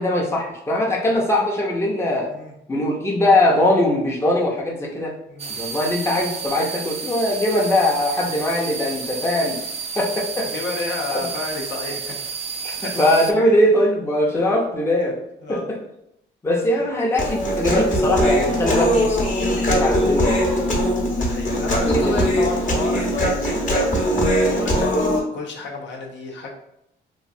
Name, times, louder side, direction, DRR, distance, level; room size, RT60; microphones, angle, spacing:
voice 1, 0.0-2.3 2.7-5.1 5.5-9.6 10.0-10.5 12.6-15.2 15.5-15.6 16.4-20.4 21.8-22.4, left 1 dB, 15° left, -2 dB, 0.6 m, -21 dB
sound 1, 5.4-13.3, right 5 dB, 30° right, 0.4 m, -31 dB
voice 2, 10.4-12.2 12.8-12.9 13.4-13.5 15.4-15.7 21.1-26.5, left 3 dB, 65° left, 0 dB, 0.7 m, -31 dB
Human voice, 17.2-25.2, equal, 40° left, 1.0 m, -20 dB
3.1 x 2.3 x 2.6 m, 0.79 s
cardioid pair, 90°, 20 cm